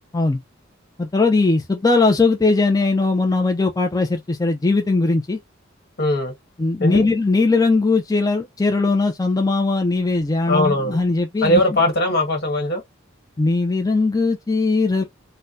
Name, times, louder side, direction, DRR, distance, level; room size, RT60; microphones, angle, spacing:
voice 1, 1.0-5.4 6.6-11.8 13.4-15.0, left 3 dB, 20° left, 0.4 m, -19 dB
voice 2, 6.0-6.3 6.8-7.0 10.5-11.0 11.4-12.8, left 1 dB, 60° left, 1.3 m, -19 dB
4.2 x 2.1 x 2.5 m
head